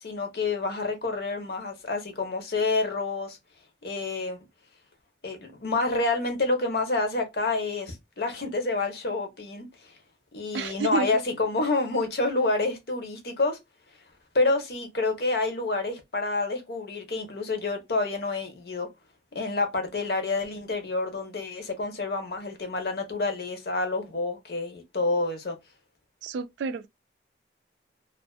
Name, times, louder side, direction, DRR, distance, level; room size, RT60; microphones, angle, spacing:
voice 1, 0.0-3.4 3.8-4.4 5.2-9.9 10.3-13.6 14.3-18.9 19.3-25.6, left 3 dB, 60° left, 0.8 m, -28 dB
voice 2, 10.5-11.1 26.2-26.9, right 5 dB, 85° right, 0.3 m, -30 dB
2.5 x 2.4 x 2.3 m
head